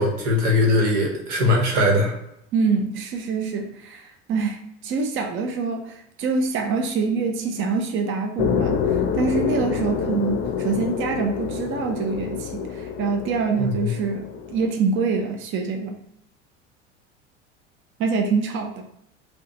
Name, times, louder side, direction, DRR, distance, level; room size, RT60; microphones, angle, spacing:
voice 1, 0.0-2.1 13.6-13.9, left 1 dB, 75° right, 0 dB, 1.1 m, -20 dB
voice 2, 2.5-16.0 18.0-18.8, right 4 dB, 35° right, 4 dB, 0.5 m, -25 dB
sound 1, 8.4-14.7, left 7 dB, 35° left, 0.6 m, -27 dB
5.0 x 2.3 x 2.8 m, 0.79 s
hypercardioid pair, 80°, 35 cm